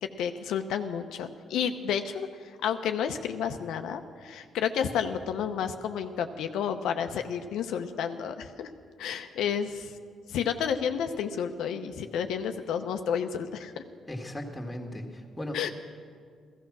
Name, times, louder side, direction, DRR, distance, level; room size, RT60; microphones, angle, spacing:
voice 1, 0.0-8.7 9.0-9.9 10.3-13.8 15.5-15.7, left 8 dB, 85° left, 7 dB, 0.8 m, -31 dB
voice 2, 14.1-15.7, left 1 dB, 10° left, 2 dB, 1.9 m, -37 dB
15.0 x 14.0 x 6.1 m, 2.1 s
cardioid pair, 90°, 0 cm